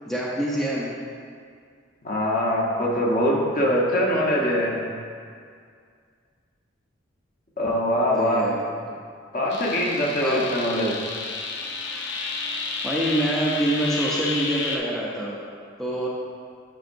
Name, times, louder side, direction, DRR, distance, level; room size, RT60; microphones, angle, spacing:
voice 1, 0.1-0.9 8.1-8.9 10.2-10.4 12.8-15.4 15.8-16.1, right 1 dB, ahead, -6 dB, 0.5 m, -26 dB
voice 2, 2.0-4.8 7.6-8.6 9.3-11.0, equal, 45° left, -3 dB, 1.1 m, -23 dB
stereo resonant riser, 9.5-14.8, left 3 dB, 60° left, 0.7 m, -31 dB
8.9 x 5.6 x 2.6 m, 2.2 s
head